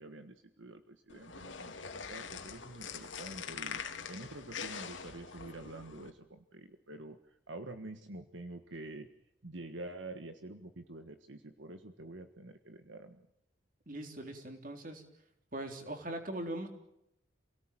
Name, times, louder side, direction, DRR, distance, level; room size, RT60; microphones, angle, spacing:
voice 1, 0.0-9.1 9.4-13.3, right 2 dB, 75° right, 8 dB, 1.6 m, -47 dB
sound 1, 1.1-6.1, left 6 dB, 75° left, 2.4 m, -44 dB
voice 2, 13.9-15.0 15.5-16.7, right 1 dB, 45° right, 5 dB, 3.7 m, -40 dB
28.5 x 18.0 x 9.0 m, 0.83 s
head